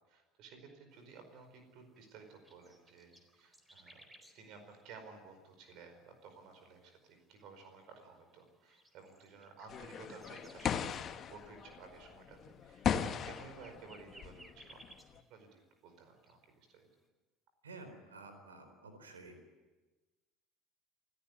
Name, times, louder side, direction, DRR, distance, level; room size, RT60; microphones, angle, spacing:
voice 1, 0.1-4.0 4.3-14.8 15.1-16.9, right 5 dB, 55° right, 6 dB, 4.9 m, -55 dB
sound 1, 1.0-15.6 15.9-16.8, right 1 dB, 10° right, 4.3 m, -62 dB
sound 2, 9.7-15.2, left 8 dB, 40° left, 1.3 m, -38 dB
voice 2, 17.6-19.3, right 3 dB, 80° right, 7 dB, 4.1 m, -51 dB
28.0 x 14.0 x 9.6 m, 1.2 s
figure-of-eight pair, 65°, 0 cm